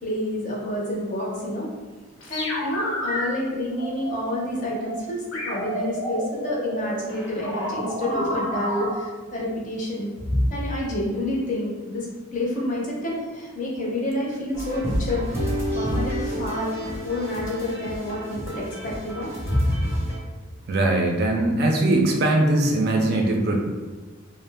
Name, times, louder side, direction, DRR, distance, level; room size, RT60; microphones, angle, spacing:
voice 1, 0.0-1.7 2.3-12.1 12.3-16.7 17.0-19.9, left 1 dB, 35° left, -3 dB, 0.5 m, -28 dB
sound 1, 2.2-3.2 3.8-5.0 5.3-8.9, equal, 70° left, 0.7 m, -29 dB
sound 2, 14.5-20.2, equal, 10° right, 0.6 m, -30 dB
voice 2, 20.7-23.6, right 1 dB, 45° right, 1 dB, 0.3 m, -21 dB
2.5 x 2.0 x 3.3 m, 1.3 s
head